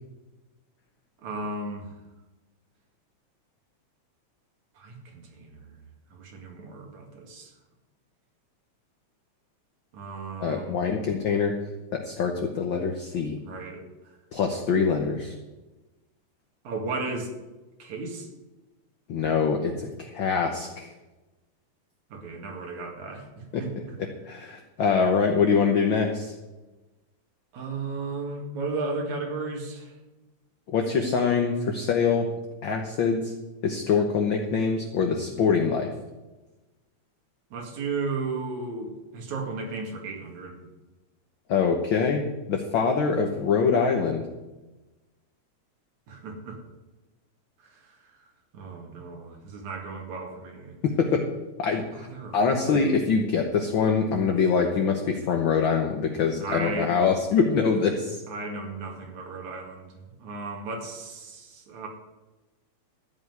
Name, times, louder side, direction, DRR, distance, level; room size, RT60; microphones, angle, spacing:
voice 1, 1.2-1.9 4.8-5.8 6.1-7.5 9.9-10.8 13.4-13.8 16.7-17.3 17.8-18.3 22.1-24.0 27.5-29.9 37.5-40.6 46.1-46.6 47.6-48.2 48.5-50.8 51.9-52.8 56.4-57.0 58.3-61.9, right 3 dB, 75° right, 1 dB, 3.5 m, -35 dB
voice 2, 10.4-11.6 11.9-13.4 14.3-15.3 19.1-20.9 23.5-23.6 24.3-26.3 30.7-32.3 32.6-33.3 33.6-35.9 41.5-44.3 50.8-51.3 51.6-51.8 52.3-58.2, left 5 dB, 60° left, 3 dB, 1.3 m, -24 dB
14.0 x 5.7 x 9.3 m, 1.1 s
omnidirectional pair, 3.3 m